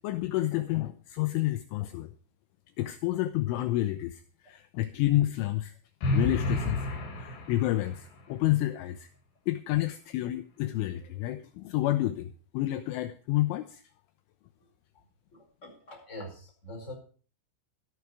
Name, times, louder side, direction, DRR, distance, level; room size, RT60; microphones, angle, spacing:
voice 1, 0.0-2.1 2.8-5.7 6.1-9.1 9.5-13.8, left 15 dB, 80° left, 10 dB, 3.0 m, -29 dB
sound 1, 6.0-8.1, left 2 dB, 55° left, 4.6 m, -30 dB
voice 2, 15.3-16.9, left 1 dB, 15° left, 1 dB, 4.8 m, -44 dB
13.5 x 11.5 x 4.7 m, 0.40 s
omnidirectional pair, 5.9 m